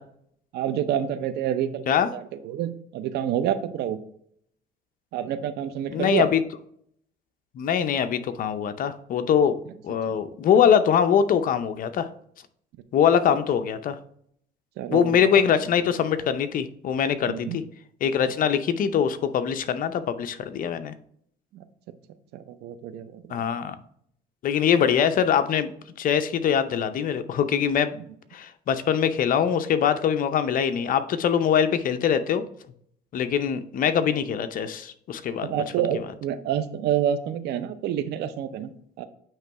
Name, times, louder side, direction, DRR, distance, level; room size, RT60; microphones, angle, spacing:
voice 1, 0.5-4.0 5.1-6.3 14.8-15.3 17.3-17.6 21.5-21.6 22.3-23.5 35.4-39.1, right 10 dB, 75° right, 11 dB, 0.7 m, -28 dB
voice 2, 5.9-6.4 7.6-9.6 9.8-12.1 12.9-14.0 14.9-17.6 18.0-20.9 23.3-23.8 24.4-25.7 26.0-27.9 28.3-32.4 33.1-35.5, left 8 dB, 55° left, 10 dB, 0.6 m, -23 dB
8.9 x 3.1 x 4.6 m, 0.66 s
cardioid pair, 110°, 17 cm